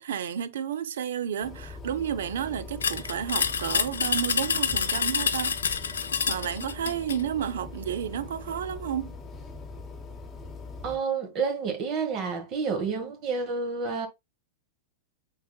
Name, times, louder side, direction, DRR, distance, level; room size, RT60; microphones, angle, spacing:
voice 1, 0.0-5.6 6.3-9.1, right 9 dB, 75° right, 0.5 m, -31 dB
sound 1, 1.4-11.0, left 3 dB, 20° left, 0.9 m, -42 dB
sound 2, 2.8-7.2, left 6 dB, 85° left, 0.4 m, -27 dB
voice 2, 10.8-14.1, right 5 dB, 40° right, 1.3 m, -29 dB
4.7 x 3.6 x 2.3 m
hypercardioid pair, 105°, 0 cm